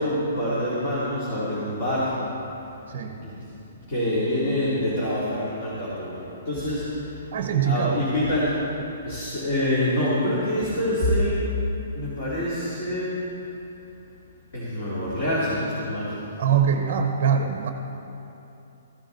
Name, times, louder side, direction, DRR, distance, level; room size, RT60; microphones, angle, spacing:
voice 1, 0.0-2.0 3.2-3.3 3.9-6.1 6.5-6.8 7.6-8.5 9.0-11.5 11.9-13.1 14.5-16.1, left 1 dB, 40° left, -9 dB, 2.8 m, -25 dB
voice 2, 2.9-3.2 7.3-8.0 16.4-17.7, right 7 dB, 35° right, 5 dB, 0.7 m, -23 dB
15.0 x 12.5 x 4.0 m, 2.9 s
hypercardioid pair, 175°, 0 cm